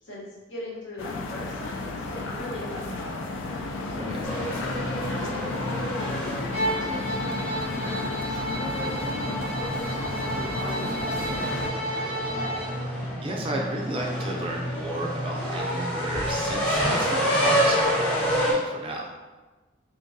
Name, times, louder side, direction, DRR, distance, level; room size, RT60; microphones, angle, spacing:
voice 1, 0.0-4.0 5.0-5.3 5.5-12.5, left 1 dB, 65° left, -7 dB, 1.2 m, -40 dB
sound 1, 1.0-11.7, left 3 dB, 85° left, 0.4 m, -33 dB
sound 2, 4.2-18.5, equal, 10° left, 0.9 m, -29 dB
Bowed string instrument, 6.5-12.8, right 1 dB, 40° left, 0.9 m, -32 dB
voice 2, 13.2-19.1, right 1 dB, 30° right, -1 dB, 0.4 m, -33 dB
3.7 x 2.9 x 2.6 m, 1.2 s
head